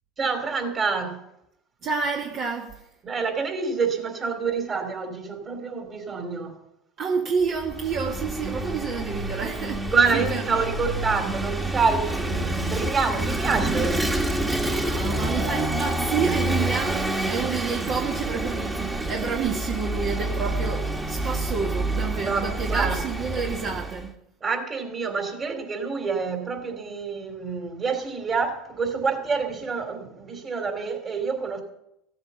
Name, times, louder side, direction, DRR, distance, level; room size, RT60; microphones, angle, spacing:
voice 1, 0.2-1.2 3.0-6.5 9.8-14.0 22.3-22.9 24.4-31.6, right 5 dB, 30° right, 2.9 m, -27 dB
voice 2, 1.8-2.8 7.0-10.7 14.5-24.2, right 6 dB, 50° right, 1.7 m, -29 dB
Vehicle / Engine, 7.5-24.1, right 1 dB, 10° right, 1.6 m, -28 dB
15.0 x 8.1 x 6.9 m
supercardioid pair, 95°, 0 cm